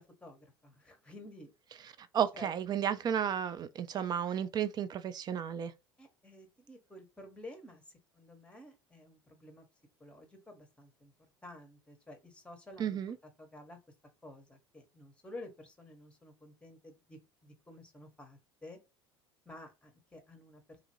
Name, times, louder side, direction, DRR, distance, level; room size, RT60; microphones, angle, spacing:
voice 1, 0.0-1.5 2.3-2.5 6.0-9.7 10.0-11.1 11.4-13.0 13.4-13.8 14.2-18.8 19.4-20.8, left 1 dB, 10° left, 1.0 m, -52 dB
voice 2, 1.8-5.7 12.8-13.2, right 8 dB, 30° right, 0.4 m, -33 dB
2.7 x 2.4 x 2.9 m
hypercardioid pair, 70°, 13 cm